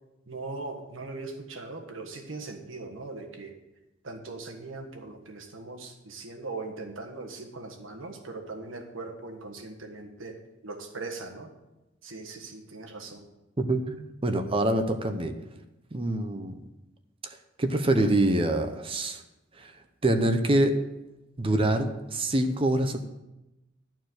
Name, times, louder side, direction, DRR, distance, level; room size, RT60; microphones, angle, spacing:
voice 1, 0.3-3.6 4.0-11.5 12.0-13.2, right 3 dB, 90° right, 3 dB, 1.5 m, -40 dB
voice 2, 13.6-15.3 15.9-16.5 17.2-19.2 19.6-19.7 20.0-20.8 21.4-23.0, right 1 dB, 30° right, 7 dB, 0.7 m, -25 dB
11.5 x 4.6 x 7.7 m, 0.99 s
head